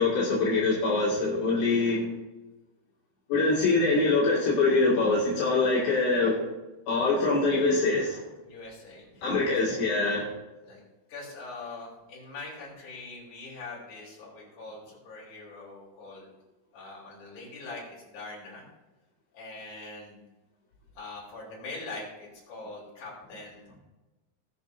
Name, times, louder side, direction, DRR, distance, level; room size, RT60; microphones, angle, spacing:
voice 1, 0.0-2.0 3.3-6.4 6.9-8.2 9.2-10.3, left 3 dB, 70° left, -7 dB, 4.3 m, -24 dB
voice 2, 8.4-9.6 10.6-10.8 11.1-16.3 16.7-18.7 19.3-20.2 20.9-23.8, left 3 dB, 40° left, -5 dB, 4.8 m, -43 dB
19.5 x 7.0 x 2.7 m, 1.1 s
omnidirectional pair, 5.6 m